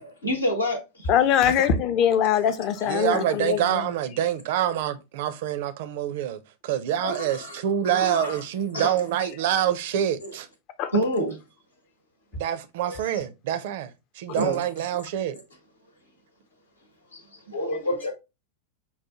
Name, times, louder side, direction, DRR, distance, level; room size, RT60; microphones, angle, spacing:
voice 1, 0.0-1.1 3.1-3.2 7.0-7.6 7.8-8.4 8.7-8.9 10.2-10.4 10.9-11.4 12.9-13.2 14.3-14.6 17.1-18.1, equal, 80° left, 0.9 m, -28 dB
voice 2, 1.1-3.9 10.8-10.9, left 9 dB, 40° left, 0.5 m, -22 dB
voice 3, 2.9-10.5 12.3-13.9 14.2-15.4, right 10 dB, 50° right, 0.4 m, -26 dB
5.5 x 2.1 x 2.9 m
figure-of-eight pair, 90°, 0 cm